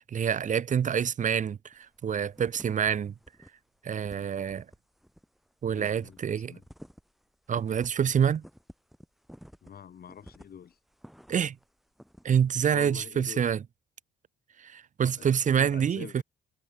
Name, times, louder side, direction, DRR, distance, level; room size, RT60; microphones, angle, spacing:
voice 1, 0.0-3.1 3.8-4.6 5.6-6.5 7.5-8.4 11.3-11.6 12.2-13.6 14.6-16.2, right 8 dB, 40° right, 0.6 m, -27 dB
sound 1, 1.7-2.0 2.3-2.9 3.2-3.5 3.7-11.6 12.0-12.3, equal, ahead, 4.0 m, -51 dB
voice 2, 5.7-6.2 6.5-6.6 9.6-10.7 12.7-13.4 15.0-15.3 15.6-16.2, left 8 dB, 50° left, 1.4 m, -45 dB
cardioid pair, 90°, 20 cm